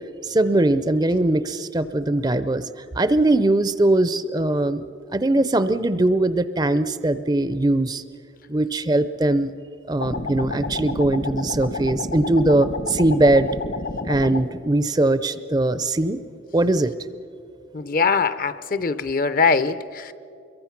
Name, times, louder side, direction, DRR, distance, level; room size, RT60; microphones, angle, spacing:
voice 1, 0.2-2.7 2.9-4.8 5.1-8.0 8.5-9.5 9.9-13.5 14.0-16.2 16.5-16.9, right 2 dB, 20° right, 13 dB, 0.5 m, -20 dB
sound 1, 10.0-14.5, left 2 dB, 60° left, 1.3 m, -30 dB
voice 2, 17.7-20.1, left 4 dB, 45° left, 14 dB, 0.6 m, -22 dB
25.5 x 23.0 x 5.9 m, 2.6 s
head